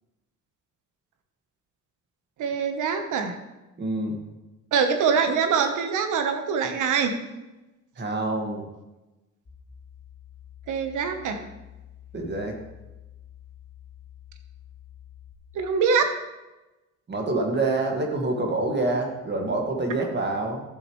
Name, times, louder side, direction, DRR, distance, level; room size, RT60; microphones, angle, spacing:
voice 1, 2.4-3.4 4.7-7.2 10.7-11.4 15.5-16.1, right 6 dB, 80° right, 7 dB, 1.2 m, -24 dB
voice 2, 3.8-4.2 8.0-8.7 12.1-12.5 17.1-20.6, right 2 dB, 35° right, 2 dB, 1.9 m, -26 dB
sound 1, 9.5-15.4, left 10 dB, 40° left, 1.8 m, -48 dB
12.0 x 7.2 x 3.2 m, 1.0 s
cardioid pair, 90°, 30 cm